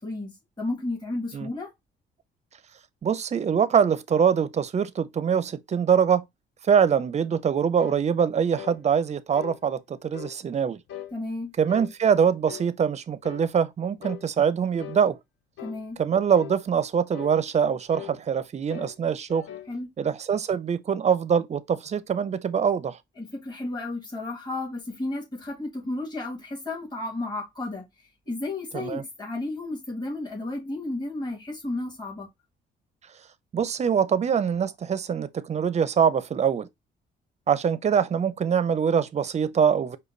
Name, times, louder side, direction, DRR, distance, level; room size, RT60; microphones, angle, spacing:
voice 1, 0.0-1.7 11.1-11.5 15.6-16.0 19.7-19.9 23.2-27.8 28.3-32.3, left 2 dB, 20° left, 1.9 m, -33 dB
voice 2, 3.0-6.2 6.7-10.8 11.6-15.2 16.0-19.4 20.0-23.0 28.7-29.0 33.5-36.7 37.5-40.0, right 7 dB, 35° right, 0.5 m, -24 dB
sound 1, 7.8-8.0 8.6-8.8 9.3-9.6 10.1-10.4 10.9-11.1 11.7-11.9 12.4-12.7 13.2-13.5 14.0-14.2 14.8-15.1 15.6-15.8 16.3-16.6 17.1-17.4 17.9-18.2 18.7-19.0 19.3-19.7, left 12 dB, 75° left, 0.6 m, -40 dB
5.1 x 2.2 x 3.8 m
cardioid pair, 90°, 20 cm